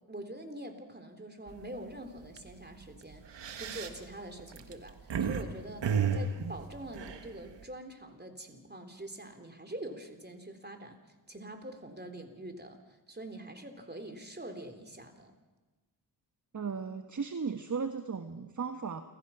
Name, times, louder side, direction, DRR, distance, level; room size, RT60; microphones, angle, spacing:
voice 1, 0.1-3.2 3.5-11.0 11.3-15.3, right 1 dB, 20° right, 5 dB, 3.9 m, -45 dB
sound 1, 1.5-1.8 2.2-2.4 3.1-5.4 5.8-7.6, right 6 dB, 70° right, 1.7 m, -32 dB
voice 2, 16.5-19.0, right 5 dB, 40° right, 8 dB, 1.3 m, -36 dB
30.0 x 15.0 x 6.0 m, 1.2 s
cardioid pair, 50°, 44 cm